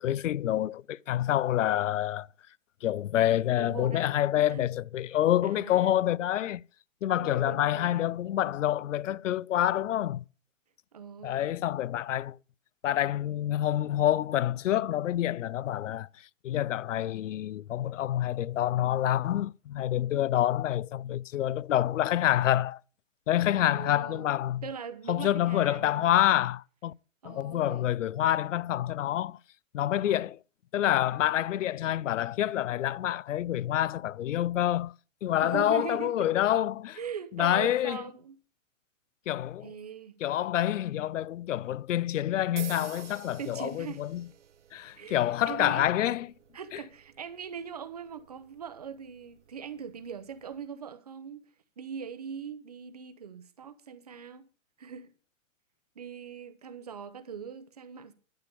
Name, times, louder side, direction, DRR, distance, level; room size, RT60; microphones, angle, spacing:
voice 1, 0.0-2.3 2.8-6.6 7.0-10.2 11.2-12.4 12.8-16.1 16.4-22.8 23.3-24.6 25.1-26.9 27.2-29.4 29.7-30.4 30.7-34.9 35.2-37.0 37.4-38.0 39.3-39.7 40.2-44.2 44.7-46.3 46.7-46.8, left 12 dB, 70° left, 0.5 m, -27 dB
voice 2, 3.6-4.1 4.5-4.7 5.4-6.0 7.1-8.1 10.9-11.5 23.7-24.3 24.6-26.2 27.2-27.9 35.4-36.3 36.9-38.4 39.6-40.1 43.4-44.0 45.0-45.2 45.5-45.8 46.5-51.4 51.8-54.5 54.8-55.1 56.0-58.1, right 7 dB, 30° right, 0.7 m, -41 dB
sound 1, 42.6-50.7, right 9 dB, 60° right, 0.9 m, -50 dB
12.0 x 6.9 x 6.8 m
hypercardioid pair, 175°, 40 cm